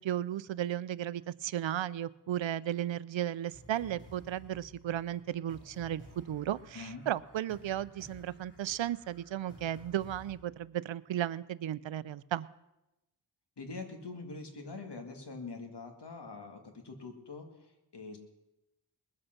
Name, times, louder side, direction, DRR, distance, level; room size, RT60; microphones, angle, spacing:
voice 1, 0.0-12.5, right 11 dB, 85° right, 18 dB, 0.5 m, -35 dB
sound 1, 3.5-10.4, equal, 25° left, 3.9 m, -55 dB
voice 2, 6.7-7.1 13.6-18.2, left 3 dB, 65° left, 4 dB, 2.1 m, -44 dB
20.5 x 7.8 x 5.9 m, 0.93 s
wide cardioid pair, 75°, 44 cm